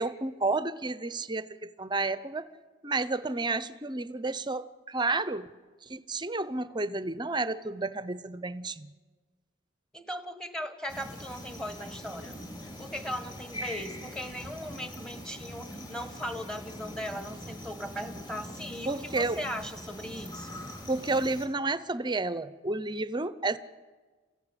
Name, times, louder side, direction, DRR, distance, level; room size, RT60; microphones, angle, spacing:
voice 1, 0.0-2.5 2.8-5.5 5.9-8.9 18.9-19.4 20.9-23.6, right 3 dB, 20° right, 14 dB, 0.8 m, -31 dB
voice 2, 9.9-12.3 12.6-20.6, equal, 5° left, 7 dB, 1.6 m, -38 dB
sound 1, 10.9-21.5, equal, 20° left, 3.3 m, -42 dB
28.0 x 15.5 x 10.0 m, 1.4 s
head